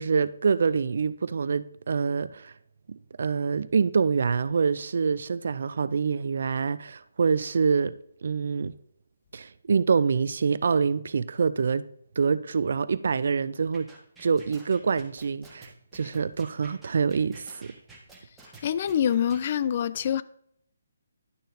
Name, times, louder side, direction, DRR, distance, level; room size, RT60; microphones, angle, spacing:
voice 1, 0.0-2.5 2.9-8.0 8.2-8.7 9.3-11.8 12.2-13.9 14.2-17.7, right 5 dB, 55° right, 0.4 m, -26 dB
sound 1, 13.7-19.4, right 3 dB, 5° right, 1.5 m, -50 dB
voice 2, 18.6-20.2, left 9 dB, 40° left, 0.3 m, -25 dB
11.5 x 6.2 x 2.7 m
figure-of-eight pair, 145°, 0 cm